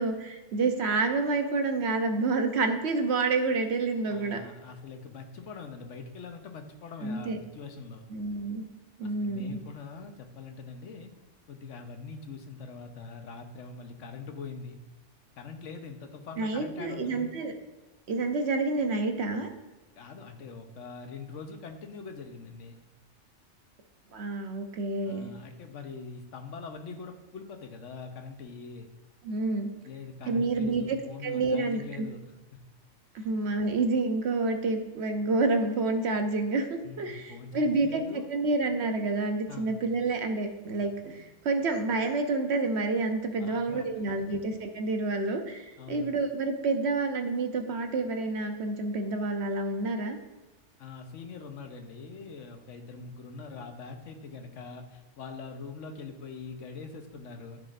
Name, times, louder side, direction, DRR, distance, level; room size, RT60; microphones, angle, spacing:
voice 1, 0.0-4.4 7.0-7.4 8.1-8.6 9.0-9.6 16.4-17.5 18.1-19.5 24.1-25.3 29.2-29.7 30.3-32.1 33.1-50.2, right 3 dB, 65° right, 6 dB, 1.0 m, -29 dB
voice 2, 4.1-8.0 9.0-11.1 11.5-14.8 15.4-17.3 19.9-22.8 25.0-28.9 29.8-32.2 32.5-32.6 33.2-33.3 36.8-38.3 39.5-39.7 43.4-43.9 44.2-44.4 45.8-46.1 50.8-57.6, left 4 dB, 80° left, 5 dB, 1.2 m, -43 dB
13.5 x 4.9 x 2.5 m, 1.1 s
omnidirectional pair, 1.2 m